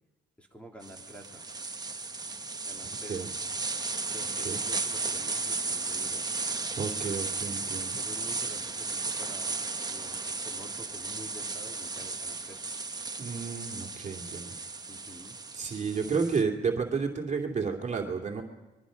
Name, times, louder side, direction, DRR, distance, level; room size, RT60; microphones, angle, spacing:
voice 1, 0.4-1.5 2.6-3.3 4.1-6.2 7.9-9.6 9.9-12.6 14.9-15.4, equal, 5° left, 1 dB, 3.1 m, -48 dB
sound 1, 0.8-16.4, right 3 dB, 20° right, 1.1 m, -35 dB
voice 2, 6.8-8.0 13.2-14.5 15.6-18.4, right 5 dB, 35° right, 1 dB, 2.5 m, -31 dB
28.5 x 23.0 x 5.2 m, 1.1 s
cardioid pair, 90°, 20 cm